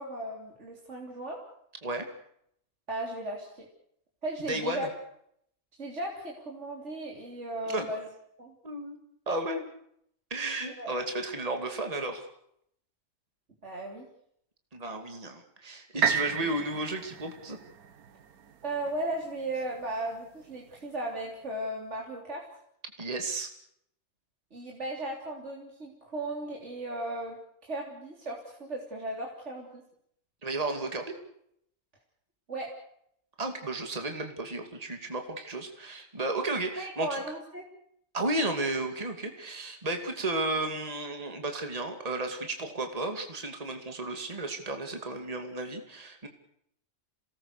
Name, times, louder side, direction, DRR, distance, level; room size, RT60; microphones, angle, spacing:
voice 1, 0.0-1.4 2.9-3.5 4.2-4.9 5.8-8.0 8.4-8.5 10.6-10.9 13.6-14.1 16.4-16.5 18.6-22.4 24.5-27.4 27.6-29.8 32.5-32.7 36.8-37.7, right 1 dB, 50° right, -1 dB, 3.8 m, -36 dB
voice 2, 4.5-4.9 7.7-7.9 8.6-9.0 9.3-9.6 10.3-12.3 14.7-17.6 23.0-23.5 30.4-31.1 33.4-37.2 38.1-46.3, right 2 dB, 25° right, 5 dB, 2.6 m, -33 dB
sound 1, 16.0-20.0 20.5-20.6, right 6 dB, 90° right, 1.7 m, -33 dB
27.5 x 19.5 x 6.7 m, 0.71 s
omnidirectional pair, 1.5 m